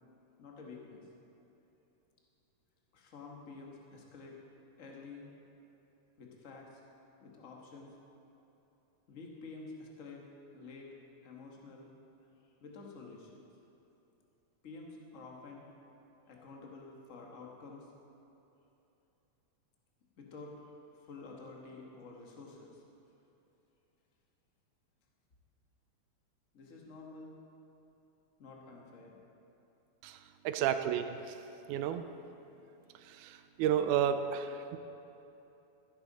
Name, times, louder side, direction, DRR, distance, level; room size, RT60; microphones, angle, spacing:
voice 1, 0.4-1.1 2.9-4.4 4.8-5.4 6.2-6.8 7.2-7.9 9.1-10.3 10.5-10.9 11.2-11.9 12.6-13.5 14.6-15.7 16.3-17.9 20.2-22.8 26.5-27.4 28.4-29.2 30.6-30.8, left 3 dB, 45° left, -1 dB, 1.0 m, -50 dB
voice 2, 30.5-31.4 31.7-32.1 33.1-34.8, right 9 dB, 90° right, 9 dB, 2.0 m, -32 dB
14.5 x 11.0 x 4.1 m, 3.0 s
omnidirectional pair, 3.4 m